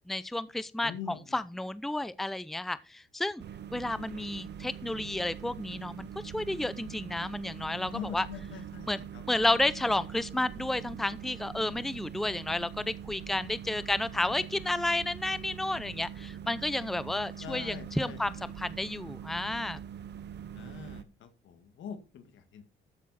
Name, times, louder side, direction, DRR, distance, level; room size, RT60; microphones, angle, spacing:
voice 1, 0.1-3.4 3.7-8.3 8.9-9.0 9.3-19.8, left 2 dB, ahead, 0.6 m, -31 dB
voice 2, 0.8-1.4 7.9-8.9 9.1-9.2 17.4-18.5 20.5-22.6, left 7 dB, 75° left, 2.0 m, -43 dB
sound 1, 3.4-21.0, right 8 dB, 60° right, 1.0 m, -43 dB
13.0 x 7.4 x 4.2 m
cardioid pair, 90°, 20 cm